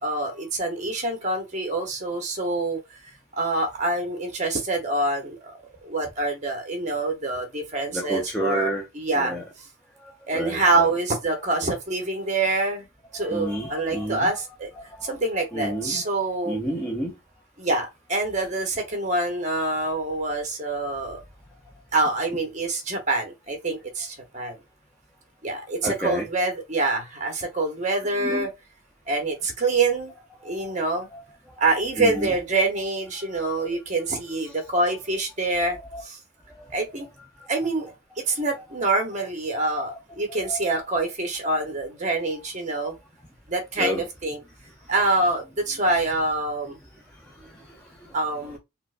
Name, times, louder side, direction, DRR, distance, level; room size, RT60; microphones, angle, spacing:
voice 1, 0.0-2.8 3.3-5.4 5.8-9.3 10.3-12.9 13.1-14.7 15.0-16.6 17.6-21.2 21.9-24.6 25.4-28.5 29.1-30.1 30.4-31.1 31.6-36.2 36.7-37.1 37.5-37.9 38.3-42.9 43.5-44.4 44.9-46.8 48.1-48.6, right 2 dB, 35° right, 0.9 m, -26 dB
voice 2, 7.9-8.9 9.1-9.5 10.0-10.9 13.1-14.4 14.8-15.1 15.5-16.0 16.4-17.1 25.8-26.3 28.2-28.5 30.4-30.7 31.1-31.2 32.0-32.4 33.2-33.8 34.4-34.6 35.7-36.0 36.6-36.8 37.4-37.5 39.9-40.0 40.3-40.7 43.8-44.1 47.3-48.2 48.4-48.6, equal, 5° left, 0.5 m, -32 dB
4.4 x 2.1 x 2.5 m
head